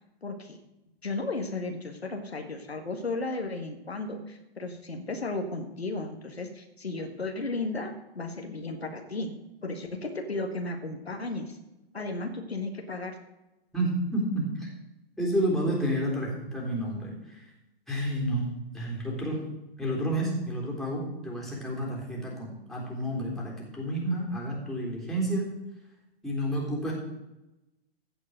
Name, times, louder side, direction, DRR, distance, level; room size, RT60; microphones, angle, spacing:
voice 1, 0.2-0.6 1.0-9.3 9.6-11.6 11.9-13.1, left 2 dB, 80° left, 4 dB, 1.7 m, -34 dB
voice 2, 13.7-14.7 15.2-17.4 17.9-18.5 18.7-19.4 19.8-25.5 26.2-26.9, right 1 dB, ahead, -3 dB, 3.5 m, -30 dB
15.0 x 5.4 x 7.8 m, 0.97 s
figure-of-eight pair, 110°, 31 cm